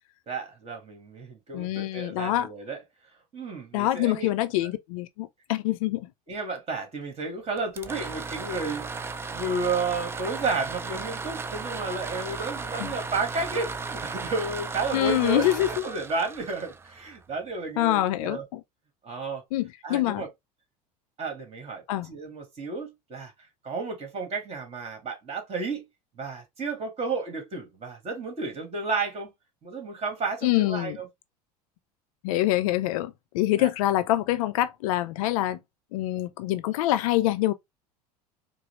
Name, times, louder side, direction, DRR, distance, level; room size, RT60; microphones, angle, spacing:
voice 1, 0.3-2.8 3.3-4.3 6.3-8.9 9.3-18.4 19.0-19.4 19.8-20.3 21.2-23.3 23.6-25.8 26.2-29.3 29.6-31.1 33.6-33.7, right 3 dB, 30° right, 1.8 m, -32 dB
voice 2, 1.5-2.5 3.7-6.0 12.8-12.9 14.9-15.7 17.8-18.6 19.5-20.2 21.9-22.1 30.4-31.0 32.2-35.6 35.9-37.5, left 15 dB, 60° left, 0.4 m, -25 dB
sound 1, 7.6-17.4, right 4 dB, 10° right, 0.4 m, -35 dB
4.7 x 2.0 x 3.0 m
figure-of-eight pair, 75°, 20 cm